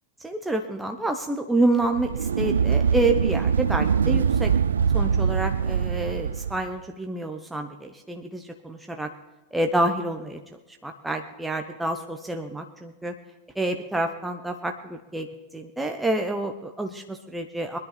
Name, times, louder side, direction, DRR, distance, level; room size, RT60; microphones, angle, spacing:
voice 1, 0.2-4.5 4.9-9.1 9.5-10.4 10.8-13.1 13.6-15.3 15.5-17.8, right 2 dB, 5° right, 4 dB, 0.9 m, -28 dB
sound 1, 1.8-6.7, right 6 dB, 70° right, 0.4 m, -23 dB
22.0 x 10.5 x 4.2 m, 1.1 s
figure-of-eight pair, 90°, 0 cm